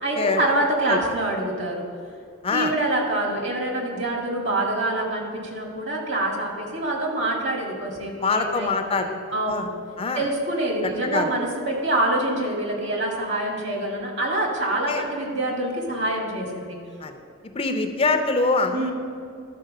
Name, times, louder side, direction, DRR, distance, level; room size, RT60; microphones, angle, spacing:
voice 1, 0.0-1.9 2.5-9.0 9.3-9.7 10.1-16.8 18.7-18.9, right 1 dB, 55° right, 0 dB, 1.9 m, -26 dB
voice 2, 8.2-9.1 9.5-9.7 10.0-10.3 11.1-11.3 14.9-15.0 17.0-17.1 17.5-18.9, left 3 dB, 25° left, 6 dB, 0.5 m, -24 dB
11.5 x 4.4 x 6.5 m, 2.3 s
head